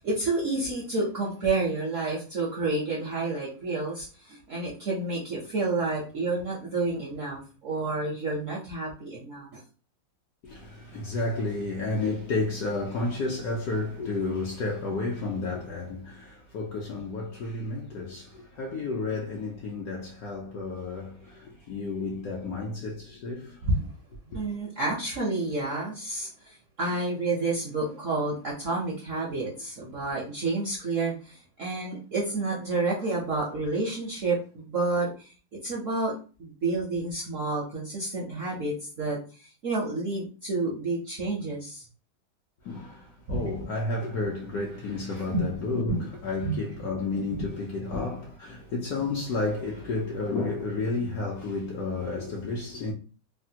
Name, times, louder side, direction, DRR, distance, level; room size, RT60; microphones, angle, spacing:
voice 1, 0.0-9.6 23.6-23.9 24.3-35.3 35.6-36.1 36.4-41.8 43.3-43.4 45.3-45.5 45.9-46.0 46.4-46.6 47.3-47.5, right 3 dB, 65° right, 0.7 m, -29 dB
voice 2, 10.4-23.7 42.6-52.9, left 3 dB, 70° left, 0.9 m, -31 dB
3.3 x 2.1 x 2.7 m
omnidirectional pair, 2.1 m